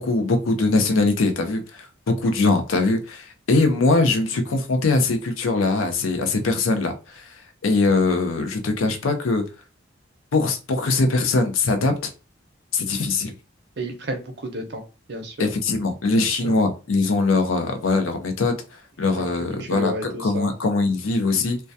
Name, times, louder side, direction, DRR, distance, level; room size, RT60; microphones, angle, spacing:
voice 1, 0.0-7.3 7.6-9.4 10.3-12.1 12.7-13.3 15.4-18.5 19.0-21.6, left 3 dB, 90° left, 6 dB, 0.5 m, -22 dB
voice 2, 13.8-14.8 15.1-15.5 16.2-16.6 19.1-20.5, right 1 dB, 55° right, 5 dB, 0.6 m, -32 dB
2.2 x 2.2 x 2.6 m, 0.32 s
head